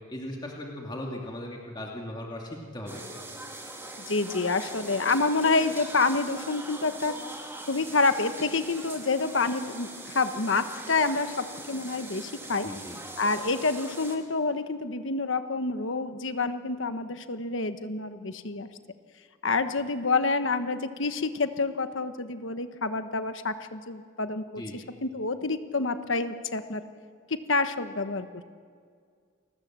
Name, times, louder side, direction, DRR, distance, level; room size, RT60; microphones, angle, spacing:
voice 1, 0.1-3.0 12.6-13.0 24.6-24.8, left 1 dB, 20° left, -1 dB, 2.5 m, -38 dB
sound 1, 2.9-14.2, right 2 dB, 10° right, 2.9 m, -42 dB
voice 2, 4.1-7.2 7.7-12.7 13.2-18.7 19.4-26.8 27.3-28.4, left 3 dB, 70° left, 9 dB, 1.3 m, -28 dB
29.0 x 20.5 x 7.5 m, 2.1 s
head